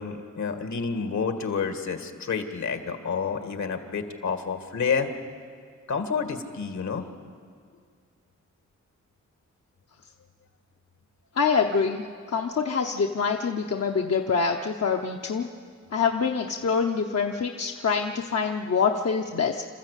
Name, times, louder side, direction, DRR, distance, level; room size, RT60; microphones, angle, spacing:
voice 1, 0.0-5.1 5.9-7.1, left 5 dB, 70° left, 6 dB, 2.0 m, -29 dB
voice 2, 11.3-12.0 12.3-15.5 15.9-19.6, left 5 dB, 55° left, 2 dB, 1.0 m, -25 dB
28.0 x 13.0 x 8.3 m, 2.1 s
cardioid pair, 85°, 30 cm